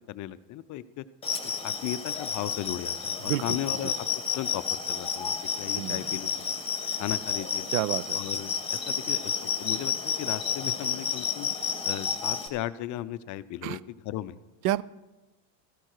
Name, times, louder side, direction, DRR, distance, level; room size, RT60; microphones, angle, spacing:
voice 1, 0.1-1.0 1.6-4.1 4.3-6.5 7.0-7.7 8.1-11.5 11.8-14.4, left 13 dB, 40° left, 15 dB, 0.5 m, -36 dB
sound 1, 1.2-12.5, left 6 dB, 10° left, 1.7 m, -31 dB
voice 2, 3.2-3.6 3.8-3.9 5.7-6.0 7.7-8.2 13.6-13.8 14.6-14.8, right 15 dB, 65° right, 22 dB, 0.5 m, -29 dB
14.0 x 13.5 x 4.5 m, 1.1 s
supercardioid pair, 105°, 48 cm